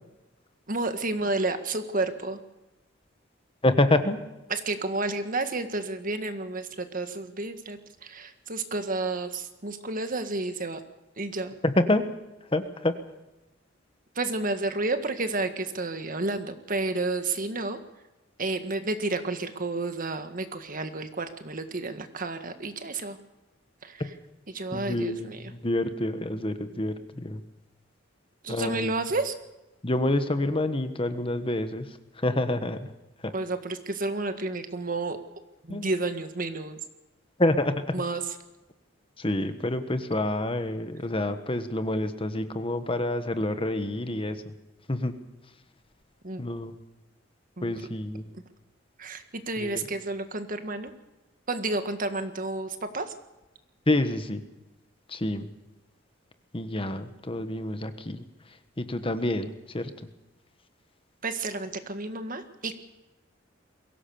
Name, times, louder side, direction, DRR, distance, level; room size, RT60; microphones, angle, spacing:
voice 1, 0.7-2.4 4.5-10.8 11.2-11.6 14.2-17.8 18.4-23.2 23.8-24.0 24.5-25.5 28.4-29.4 33.3-35.2 35.6-36.8 37.9-38.2 46.2-46.4 47.6-47.7 48.3-48.4 49.0-50.9 51.5-53.1 61.2-62.7, right 2 dB, 45° right, 8 dB, 1.7 m, -31 dB
voice 2, 3.6-4.2 11.6-12.1 12.4-13.0 24.7-27.4 28.5-28.9 29.8-32.9 33.2-33.3 35.7-35.9 37.4-38.0 39.2-44.5 44.9-45.2 46.4-46.7 47.6-48.3 49.6-49.9 53.9-54.4 55.1-55.5 56.5-60.1, left 1 dB, 30° left, 9 dB, 1.3 m, -28 dB
22.5 x 17.0 x 7.0 m, 1.0 s
head